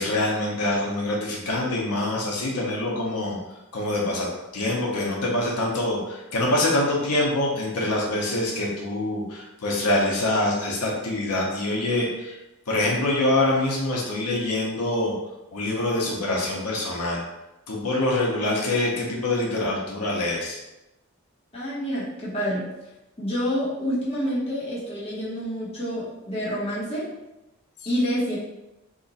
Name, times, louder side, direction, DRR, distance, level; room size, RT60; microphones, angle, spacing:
voice 1, 0.0-3.4 3.7-12.4 12.7-15.1 15.5-17.2 17.7-20.6, left 1 dB, 85° left, -3 dB, 0.7 m, -25 dB
voice 2, 21.5-22.7 23.2-27.1 27.8-28.4, equal, 25° left, -8 dB, 1.1 m, -28 dB
2.9 x 2.5 x 4.0 m, 0.97 s
head